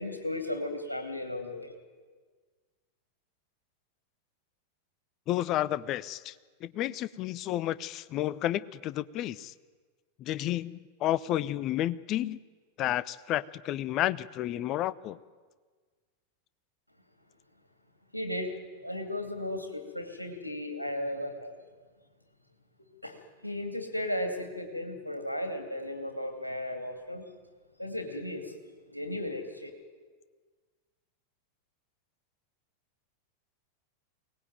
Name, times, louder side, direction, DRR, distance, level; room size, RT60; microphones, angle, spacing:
voice 1, 0.0-1.7 18.1-18.5 18.8-21.6 23.0-27.2 27.8-28.5 28.9-29.7, left 1 dB, 85° left, 5 dB, 2.8 m, -35 dB
voice 2, 5.3-6.3 6.6-9.5 10.2-12.4 12.8-15.2, left 13 dB, 35° left, 18 dB, 0.7 m, -31 dB
23.0 x 19.0 x 9.2 m, 1.5 s
figure-of-eight pair, 90°, 0 cm